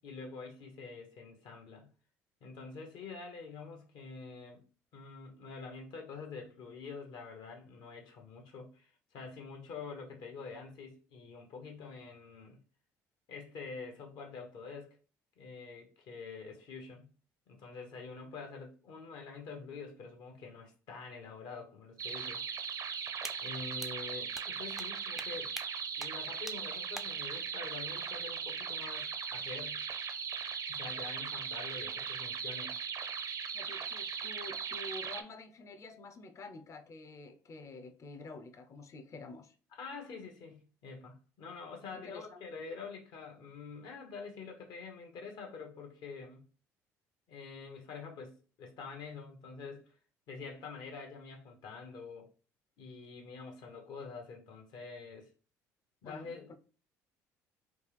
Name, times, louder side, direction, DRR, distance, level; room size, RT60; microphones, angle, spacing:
voice 1, 0.0-1.9 2.4-4.6 4.9-12.6 13.3-15.0 15.4-17.1 17.5-22.9 23.4-25.5 26.0-29.8 30.7-32.8 39.7-46.5 47.3-50.0 50.3-52.3 52.8-55.3 56.0-56.5, left 4 dB, 65° left, 1.0 m, -46 dB
sound 1, 22.0-35.2, right 7 dB, 50° right, 0.5 m, -39 dB
sound 2, 23.2-23.3 23.8-23.9 24.3-24.5 24.8-24.9 25.2-25.3 25.6-25.7 26.0-26.1 26.5-26.6 27.0-27.1, right 1 dB, 5° right, 0.4 m, -42 dB
voice 2, 33.5-39.5 41.9-42.4 56.0-56.3, left 3 dB, 40° left, 0.6 m, -48 dB
3.4 x 2.4 x 3.3 m
hypercardioid pair, 65°, 8 cm